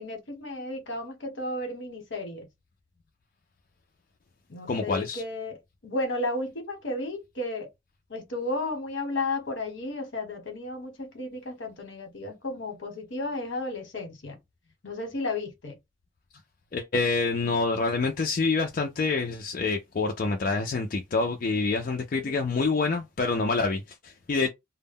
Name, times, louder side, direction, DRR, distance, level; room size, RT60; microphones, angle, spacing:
voice 1, 0.0-2.5 4.5-5.6 5.8-7.7 8.1-14.4 14.8-15.8 22.1-22.3, left 2 dB, 70° left, 1.0 m, -33 dB
voice 2, 4.7-5.2 16.7-24.5, left 3 dB, 45° left, 0.3 m, -27 dB
2.1 x 2.0 x 3.5 m
head